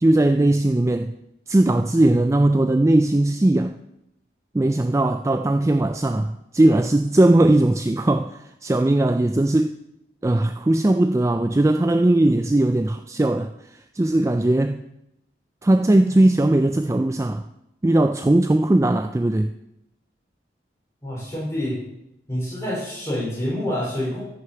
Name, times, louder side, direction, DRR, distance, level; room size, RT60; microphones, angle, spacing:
voice 1, 0.0-1.2 1.5-3.8 4.5-9.7 10.2-14.9 15.6-17.4 17.8-19.5, right 1 dB, 15° right, 7 dB, 0.3 m, -19 dB
voice 2, 21.0-21.8 22.3-24.2, left 1 dB, 15° left, -5 dB, 4.7 m, -27 dB
14.0 x 6.6 x 5.7 m, 0.84 s
head